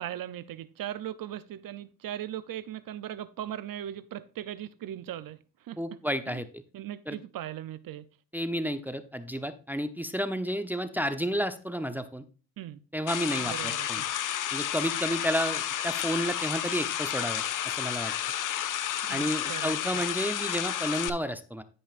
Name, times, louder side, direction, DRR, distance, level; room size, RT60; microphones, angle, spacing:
voice 1, 0.0-6.0 6.3-6.4 6.7-8.1 12.6-12.8 13.4-14.1 19.0-20.0, right 11 dB, 70° right, 0.6 m, -39 dB
voice 2, 5.8-6.4 7.1-7.2 8.3-12.2 12.9-14.0 14.5-17.4 17.8-18.1 19.1-21.6, equal, 5° right, 0.8 m, -31 dB
sound 1, 13.1-21.1, left 11 dB, 60° left, 0.7 m, -31 dB
15.0 x 5.4 x 2.5 m
cardioid pair, 80°, 35 cm